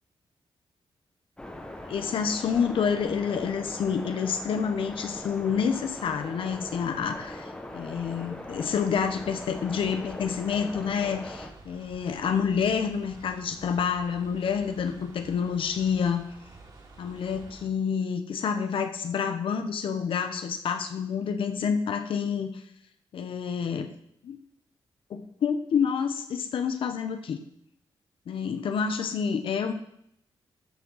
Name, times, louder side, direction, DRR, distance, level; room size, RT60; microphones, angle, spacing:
sound 1, 1.4-11.5, left 1 dB, 10° left, 1.2 m, -41 dB
voice 1, 1.9-16.3 17.0-22.6 23.1-23.9 24.2-24.4 25.1-27.4 28.3-29.7, left 6 dB, 75° left, 8 dB, 1.0 m, -28 dB
sound 2, 7.8-17.7, right 3 dB, 50° right, 3.1 m, -51 dB
13.5 x 6.2 x 5.7 m, 0.73 s
wide cardioid pair, 165°, 9 cm